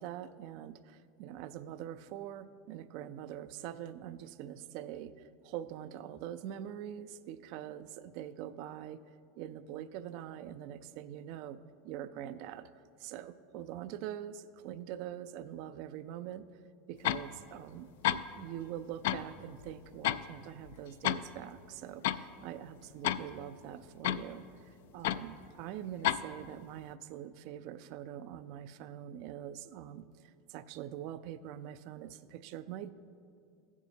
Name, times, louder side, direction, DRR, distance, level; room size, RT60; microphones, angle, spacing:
voice 1, 0.0-5.1 5.4-9.0 9.4-11.6 11.8-12.7 13.0-16.5 16.9-32.9, right 11 dB, 60° right, 12 dB, 0.3 m, -44 dB
sound 1, 17.0-17.3 17.8-17.9 18.0-18.2 19.0-19.3 19.6-20.3 20.6-21.2 21.6-21.7 22.0-22.2 23.0-23.3 24.0-24.3 25.0-25.2 26.0-26.2, left 12 dB, 80° left, 0.3 m, -30 dB
15.0 x 7.1 x 2.7 m, 2.5 s
supercardioid pair, 120°, 0 cm